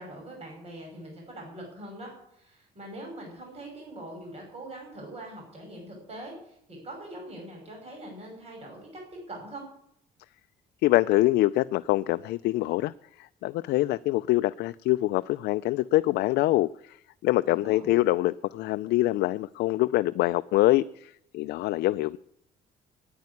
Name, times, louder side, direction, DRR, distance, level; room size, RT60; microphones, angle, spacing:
voice 1, 0.0-9.6 17.5-17.9, right 1 dB, 40° right, 0 dB, 6.0 m, -43 dB
voice 2, 10.8-12.9 13.2-17.0 17.2-22.2, left 17 dB, 75° left, 12 dB, 0.4 m, -25 dB
9.5 x 9.0 x 9.7 m, 0.73 s
cardioid pair, 110°, 17 cm